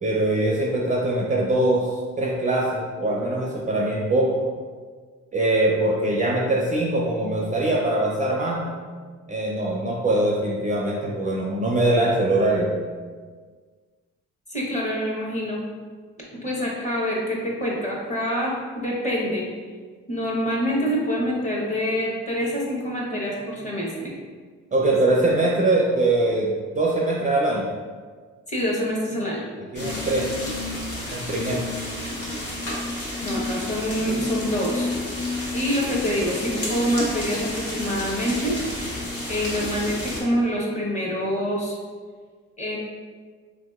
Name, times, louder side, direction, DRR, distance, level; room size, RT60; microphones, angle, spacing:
voice 1, 0.0-4.5 5.3-8.8 9.3-12.7 24.7-27.7 29.7-30.3 31.1-31.8, right 2 dB, 25° right, -3 dB, 0.4 m, -22 dB
voice 2, 14.5-15.6 16.3-19.5 20.1-24.1 28.5-29.4 33.2-34.9 35.5-38.6 39.3-41.8 42.6-42.8, equal, 25° left, -3 dB, 0.9 m, -26 dB
sound 1, 29.7-40.2, left 2 dB, 50° left, 1.1 m, -30 dB
3.2 x 2.8 x 2.3 m, 1.5 s
cardioid pair, 90°, 30 cm